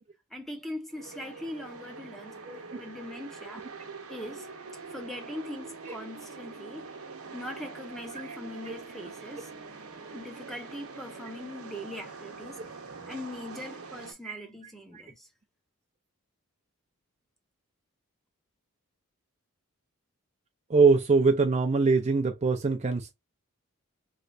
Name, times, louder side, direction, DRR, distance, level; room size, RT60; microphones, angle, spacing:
voice 1, 0.3-3.6 4.1-4.5 4.9-6.9 7.3-9.5 10.1-12.6 13.1-15.3, left 1 dB, ahead, 0.7 m, -41 dB
sound 1, 0.9-14.1, right 4 dB, 70° right, 0.9 m, -44 dB
voice 2, 2.5-2.8 5.9-6.0 8.7-8.8 14.2-14.4 14.9-15.0 20.7-23.1, right 4 dB, 30° right, 0.5 m, -23 dB
3.2 x 2.9 x 2.5 m
head